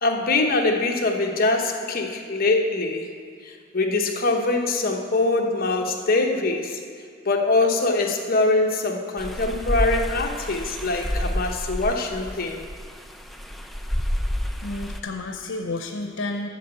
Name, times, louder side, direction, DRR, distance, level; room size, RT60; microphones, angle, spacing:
voice 1, 0.0-3.1 3.4-6.8 7.2-12.6, left 2 dB, 50° left, 2 dB, 1.0 m, -23 dB
sound 1, 9.2-15.0, equal, ahead, 0.5 m, -29 dB
voice 2, 14.6-16.5, left 2 dB, 90° left, 4 dB, 0.7 m, -31 dB
8.3 x 6.9 x 7.7 m, 2.2 s
head